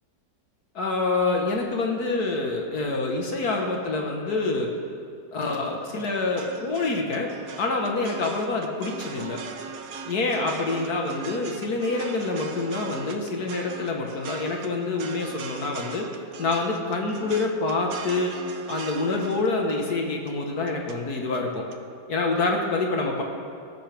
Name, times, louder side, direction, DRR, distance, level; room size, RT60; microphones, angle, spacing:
voice 1, 0.7-4.7 5.3-9.4 10.0-16.1 16.4-18.3 18.7-21.6 22.1-23.2, left 3 dB, 65° left, 1 dB, 1.8 m, -26 dB
sound 1, 5.8-21.0 21.3-21.8, right 6 dB, 60° right, 1.2 m, -39 dB
18.5 x 14.0 x 3.5 m, 2.3 s
omnidirectional pair, 1.9 m